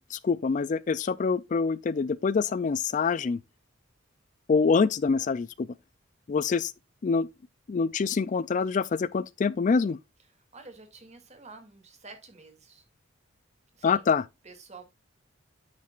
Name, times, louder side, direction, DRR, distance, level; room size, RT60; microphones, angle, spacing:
voice 1, 0.0-3.4 4.5-5.7 6.3-6.7 7.0-7.3 7.7-10.0 13.8-14.2, left 5 dB, 40° left, 0.3 m, -25 dB
voice 2, 10.3-12.8 13.7-14.1 14.4-14.8, right 3 dB, 35° right, 2.5 m, -49 dB
9.5 x 7.3 x 2.4 m
head